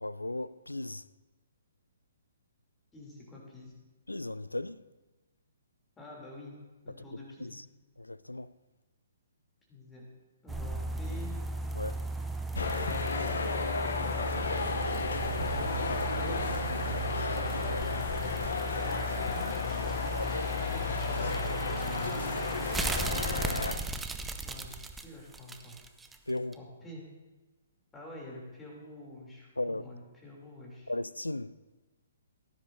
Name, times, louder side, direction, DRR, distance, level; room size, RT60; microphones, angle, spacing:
voice 1, 0.0-1.0 4.1-4.8 7.4-7.6 8.0-8.5 11.7-12.0 17.6-17.9 20.1-20.5 26.3-26.6 29.6-29.8 30.9-31.6, left 1 dB, 85° left, 0.4 m, -36 dB
voice 2, 2.9-3.7 6.0-6.5 6.8-7.6 9.7-10.0 10.4-11.3 13.9-14.8 15.4-16.4 18.7-19.5 19.8-20.9 22.8-23.5 24.4-25.8 26.5-27.0 27.9-30.9, left 1 dB, 10° left, 3.1 m, -48 dB
sound 1, 10.5-26.2 26.5-26.6, right 2 dB, 10° right, 0.6 m, -36 dB
sound 2, 12.6-23.7, left 4 dB, 60° left, 0.8 m, -33 dB
17.5 x 10.0 x 2.7 m
figure-of-eight pair, 125°, 0 cm